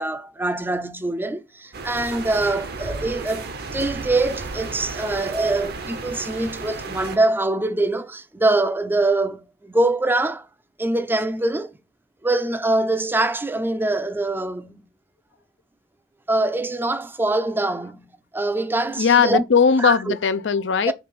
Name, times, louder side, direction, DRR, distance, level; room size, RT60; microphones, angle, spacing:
voice 1, 0.0-10.5 10.8-11.7 12.2-14.8 16.3-19.4 19.8-20.1 20.8-20.9, right 2 dB, 10° right, 0.5 m, -23 dB
sound 1, 1.7-7.2, right 3 dB, 60° right, 0.8 m, -33 dB
voice 2, 19.0-20.9, left 6 dB, 75° left, 0.5 m, -19 dB
5.1 x 3.4 x 5.6 m
head